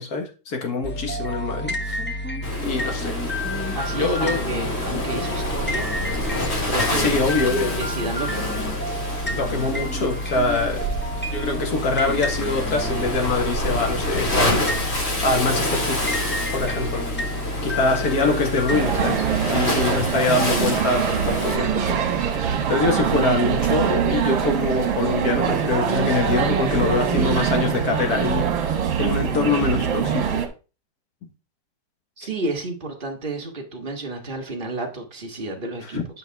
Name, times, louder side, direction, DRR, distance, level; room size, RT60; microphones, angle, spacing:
voice 1, 0.0-2.0 2.6-3.2 3.9-4.4 6.9-7.7 9.3-10.8 11.3-16.1 16.5-17.1 17.6-30.4 35.9-36.0, left 3 dB, 50° left, 1.9 m, -24 dB
sound 1, 0.8-19.1, left 1 dB, 10° left, 0.7 m, -30 dB
Waves surf, 2.4-21.6, left 1 dB, 30° left, 2.6 m, -28 dB
voice 2, 3.7-5.9 6.2-7.1 7.8-8.6 32.2-36.0, right 2 dB, 25° right, 1.7 m, -31 dB
sound 2, 18.7-30.5, right 7 dB, 75° right, 1.9 m, -23 dB
9.0 x 5.8 x 3.5 m
omnidirectional pair, 2.2 m